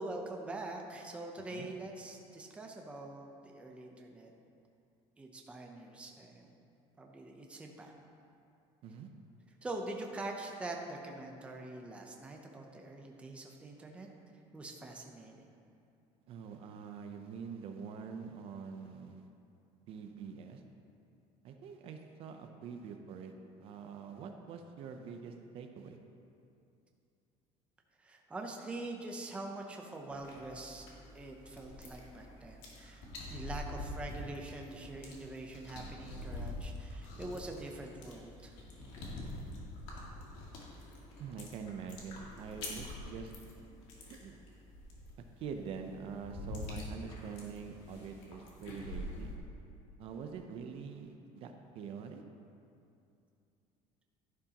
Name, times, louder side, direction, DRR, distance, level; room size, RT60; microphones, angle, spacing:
voice 1, 0.0-4.3 5.2-6.5 7.0-7.9 9.6-14.1 14.5-15.5 28.0-30.9 31.1-38.6, right 2 dB, 10° right, 1 dB, 0.7 m, -44 dB
voice 2, 16.3-19.3 19.9-20.6 21.4-23.3 23.6-26.0 41.2-43.3 44.1-44.4 45.4-49.3 50.0-52.2, right 6 dB, 45° right, 5 dB, 0.7 m, -45 dB
sound 1, 30.1-49.4, left 1 dB, 65° left, 2.3 m, -46 dB
11.5 x 11.0 x 2.9 m, 2.6 s
cardioid pair, 170°, 13 cm